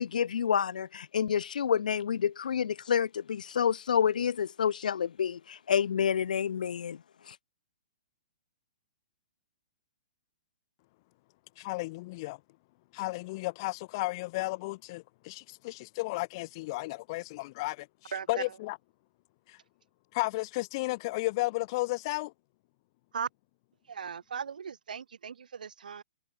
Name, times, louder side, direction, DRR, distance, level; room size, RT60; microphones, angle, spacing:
voice 1, 0.0-7.0 7.3-7.4, left 8 dB, 80° left, 0.7 m, -28 dB
voice 2, 11.6-12.4 12.9-18.8 19.5-19.6 20.1-22.3, left 22 dB, 35° left, 3.6 m, -33 dB
voice 3, 18.1-18.4 23.1-23.3 23.9-26.0, right 7 dB, 85° right, 3.5 m, -37 dB
hypercardioid pair, 155°, 4 cm